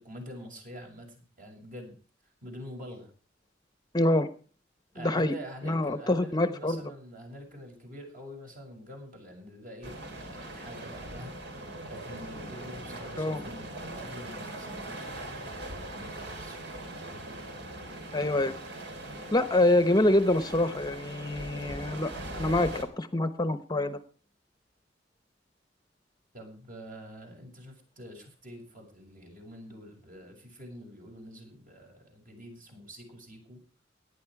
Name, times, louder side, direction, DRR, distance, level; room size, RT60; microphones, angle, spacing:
voice 1, 0.0-2.0 2.4-3.1 4.9-11.4 11.9-16.6 26.3-33.6, equal, 45° right, 2 dB, 7.0 m, -46 dB
voice 2, 3.9-4.3 5.0-5.3 5.6-6.8 13.2-13.4 18.1-18.5 19.3-24.0, left 1 dB, 20° left, 12 dB, 0.9 m, -26 dB
sound 1, 9.8-22.9, right 1 dB, 65° right, 3.4 m, -41 dB
18.0 x 11.5 x 4.8 m, 0.39 s
head